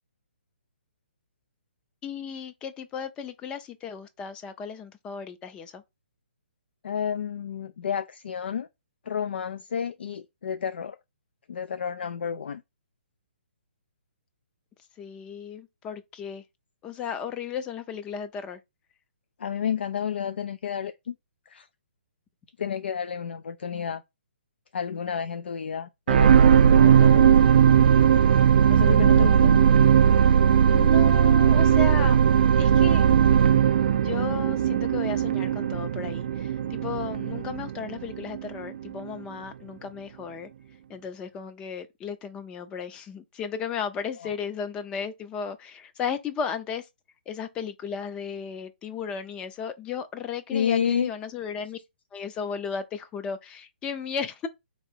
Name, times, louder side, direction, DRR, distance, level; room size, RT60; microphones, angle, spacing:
voice 1, 2.0-5.8 15.0-16.4 16.8-18.6 29.4-29.8 30.7-32.2 32.5-33.0 34.0-40.5 40.9-46.9 47.3-51.8 52.1-54.5, left 6 dB, 15° left, 0.5 m, -35 dB
voice 2, 6.8-8.7 9.1-11.0 11.5-12.6 19.4-21.2 21.5-21.7 22.6-24.0 24.7-27.3 28.7-29.6 44.2-44.3 50.5-51.1, left 7 dB, 70° left, 0.4 m, -30 dB
sound 1, 26.1-38.5 39.0-39.1, right 8 dB, 50° right, 0.4 m, -18 dB
3.9 x 3.0 x 4.5 m
hypercardioid pair, 155°, 6 cm